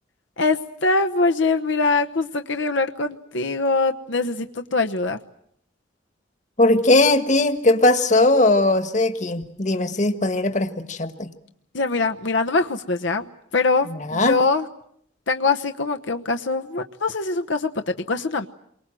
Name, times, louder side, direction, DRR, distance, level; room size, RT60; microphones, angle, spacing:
voice 1, 0.4-5.2 11.7-14.7 15.3-18.5, left 3 dB, 75° left, 5 dB, 1.1 m, -23 dB
voice 2, 6.6-11.3 13.9-14.4, left 2 dB, 40° left, 9 dB, 1.6 m, -19 dB
28.5 x 23.5 x 7.7 m, 0.71 s
head